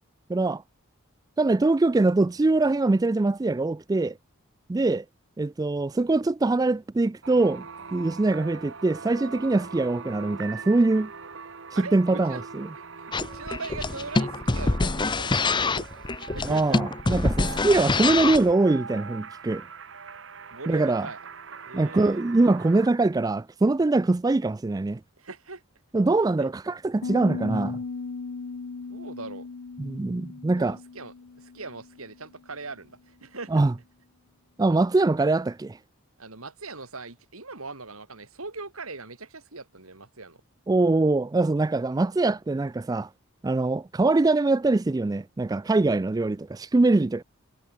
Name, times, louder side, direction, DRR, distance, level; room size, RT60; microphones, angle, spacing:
voice 1, 0.3-0.6 1.4-4.2 4.7-5.0 5.4-7.7 7.9-11.1 11.8-12.7 16.4-19.6 20.7-21.1 21.7-25.0 25.9-27.8 29.8-30.8 33.5-33.7 34.6-35.8 40.7-43.1 43.4-47.2, right 2 dB, 15° right, 0.3 m, -23 dB
sound 1, 7.2-22.9, right 5 dB, 60° right, 1.3 m, -42 dB
voice 2, 11.7-12.4 12.7-16.8 20.5-21.2 21.7-22.2 25.2-25.6 26.4-26.5 28.9-29.5 30.6-33.6 36.2-40.4, right 3 dB, 85° right, 4.1 m, -40 dB
sound 2, 13.1-18.5, left 3 dB, 20° left, 0.7 m, -25 dB
Piano, 27.0-32.6, left 4 dB, 85° left, 0.6 m, -37 dB
head